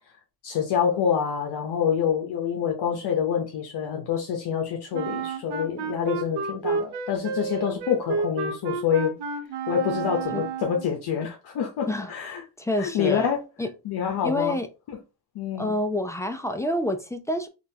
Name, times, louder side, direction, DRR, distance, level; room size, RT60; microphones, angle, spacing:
voice 1, 0.4-9.2 9.7-12.4 12.8-13.4 13.8-14.6 15.3-15.7, left 8 dB, 75° left, 0.7 m, -26 dB
Wind instrument woodwind instrument, 4.9-11.0, right 5 dB, 80° right, 0.7 m, -31 dB
voice 2, 12.6-13.3 13.6-13.7 14.2-14.7 15.6-17.5, left 1 dB, 10° left, 0.4 m, -27 dB
3.7 x 2.5 x 2.7 m
cardioid pair, 95°, 40 cm